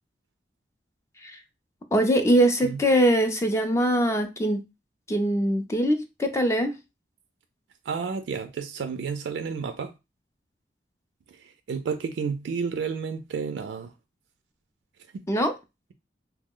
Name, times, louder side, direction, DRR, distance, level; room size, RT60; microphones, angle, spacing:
voice 1, 1.9-4.6 5.1-6.7 15.3-15.5, equal, 15° left, 0.4 m, -22 dB
voice 2, 7.9-9.9 11.3-13.9, right 5 dB, 85° right, 0.3 m, -31 dB
2.9 x 2.0 x 3.6 m
head